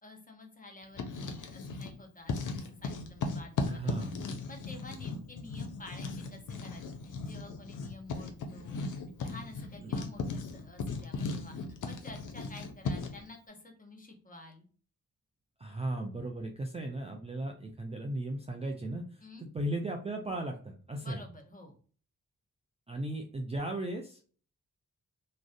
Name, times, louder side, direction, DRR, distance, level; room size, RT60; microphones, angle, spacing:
voice 1, 0.0-3.9 4.5-8.9 9.2-11.6 11.8-14.7 19.2-19.5 21.0-21.7, left 2 dB, 25° left, 3 dB, 0.8 m, -50 dB
Writing, 0.8-2.0 2.3-13.2, left 4 dB, 60° left, 0.6 m, -37 dB
voice 2, 3.7-4.2 9.8-10.0 15.6-21.2 22.9-24.2, right 1 dB, 20° right, 2 dB, 0.4 m, -36 dB
2.4 x 2.1 x 2.5 m, 0.42 s
supercardioid pair, 40°, 36 cm